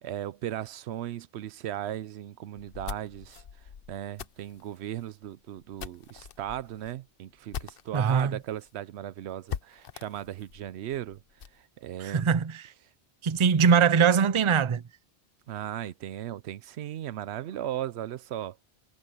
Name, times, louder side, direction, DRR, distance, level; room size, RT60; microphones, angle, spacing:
voice 1, 0.0-3.4 3.9-11.2 11.5-12.3 15.5-18.6, right 12 dB, 85° right, 0.9 m, -37 dB
sound 1, 2.6-8.2 8.6-8.7 9.0-9.1 9.5-11.6, left 8 dB, 60° left, 1.0 m, -42 dB
voice 2, 7.9-8.4 12.0-12.7 13.2-14.8, right 6 dB, 35° right, 0.5 m, -22 dB
omnidirectional pair, 1.1 m